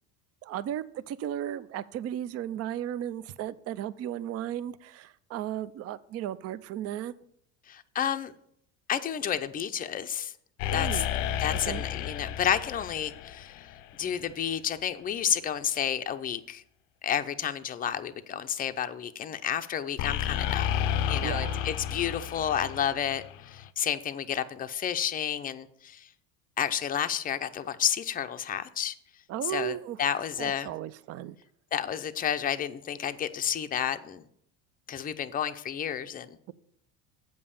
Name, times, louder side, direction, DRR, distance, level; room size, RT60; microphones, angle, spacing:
voice 1, 0.4-7.1 10.7-11.1 11.5-11.8 21.2-21.6 29.3-30.0 30.4-31.4, right 11 dB, 40° right, 16 dB, 0.5 m, -35 dB
voice 2, 7.7-8.3 8.9-10.3 10.7-11.0 11.4-13.6 14.0-16.6 17.0-20.8 21.1-26.1 26.6-28.9 29.5-30.7 31.7-34.2 34.9-36.5, left 9 dB, 20° left, 9 dB, 0.5 m, -31 dB
sound 1, 10.6-14.3 20.0-23.7, left 10 dB, 70° left, 0.6 m, -32 dB
7.8 x 5.4 x 7.0 m, 0.68 s
supercardioid pair, 100°, 40 cm